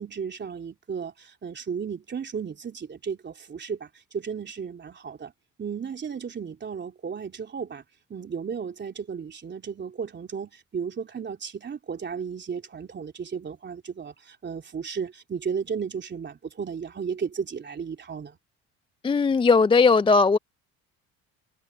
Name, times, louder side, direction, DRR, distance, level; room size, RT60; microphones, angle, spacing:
voice 1, 0.0-5.3 5.6-7.8 8.1-18.4, right 6 dB, 35° right, 3.3 m, -34 dB
voice 2, 19.0-20.4, left 4 dB, 15° left, 0.4 m, -18 dB
supercardioid pair, 90°, 31 cm